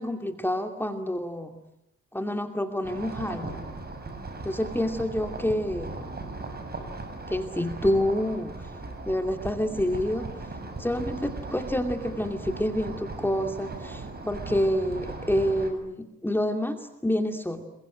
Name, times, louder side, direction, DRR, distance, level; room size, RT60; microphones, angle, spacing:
voice 1, 0.0-1.6 2.1-3.6 4.4-6.1 7.3-8.7 9.0-17.6, left 1 dB, 5° left, 5 dB, 2.5 m, -28 dB
sound 1, 2.8-15.7, right 3 dB, 30° right, 7.4 m, -38 dB
28.0 x 23.0 x 9.1 m, 0.82 s
cardioid pair, 90°, 30 cm